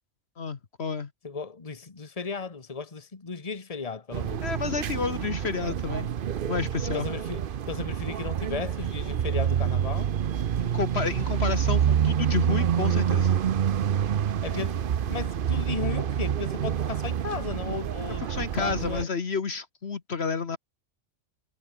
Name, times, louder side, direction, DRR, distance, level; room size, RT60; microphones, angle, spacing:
voice 1, 0.4-1.1 4.4-6.1 6.5-7.1 10.6-13.3 18.2-20.6, left 5 dB, 55° left, 1.6 m, -30 dB
voice 2, 1.2-4.4 6.9-10.2 14.4-18.2 18.6-19.1, left 4 dB, 30° left, 1.6 m, -35 dB
sound 1, 4.1-19.0, right 9 dB, 50° right, 0.8 m, -27 dB
omnidirectional pair, 1.3 m